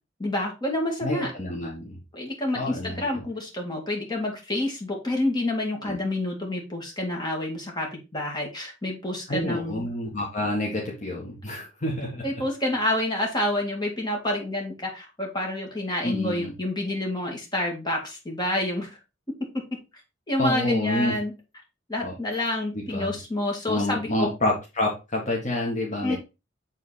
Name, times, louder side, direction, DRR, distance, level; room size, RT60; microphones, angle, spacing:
voice 1, 0.2-1.3 2.1-9.8 12.2-19.0 20.3-21.3 21.9-24.3 26.0-26.2, left 1 dB, 25° left, -1 dB, 2.3 m, -28 dB
voice 2, 1.0-2.0 2.5-3.2 5.8-6.0 9.3-12.2 16.0-16.5 20.4-21.1 22.0-22.1 22.7-23.2 23.7-26.2, left 1 dB, 40° left, -2 dB, 1.5 m, -28 dB
7.5 x 3.8 x 4.2 m, 0.27 s
head